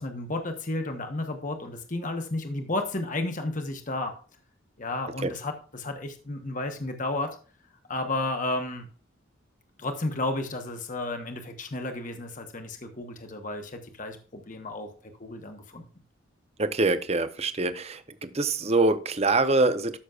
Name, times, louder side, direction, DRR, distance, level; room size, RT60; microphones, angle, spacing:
voice 1, 0.0-4.1 4.8-7.3 7.9-8.9 9.8-14.9 15.2-15.8, left 2 dB, 40° left, 1.1 m, -32 dB
voice 2, 16.6-18.0 18.3-20.0, right 2 dB, 30° right, 0.8 m, -24 dB
13.0 x 6.3 x 2.4 m
head